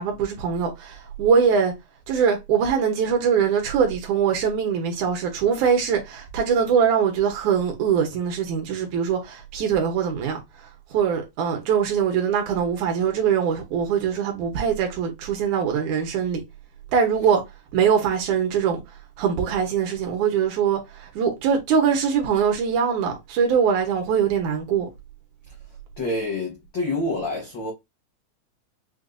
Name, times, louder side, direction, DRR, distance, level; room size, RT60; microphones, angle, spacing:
voice 1, 0.0-1.7 2.1-10.4 10.9-16.4 16.9-17.4 17.7-18.8 19.2-24.9, right 7 dB, 70° right, 2.3 m, -22 dB
voice 2, 26.0-27.7, left 2 dB, 65° left, 1.1 m, -27 dB
6.1 x 2.5 x 2.6 m
omnidirectional pair, 3.8 m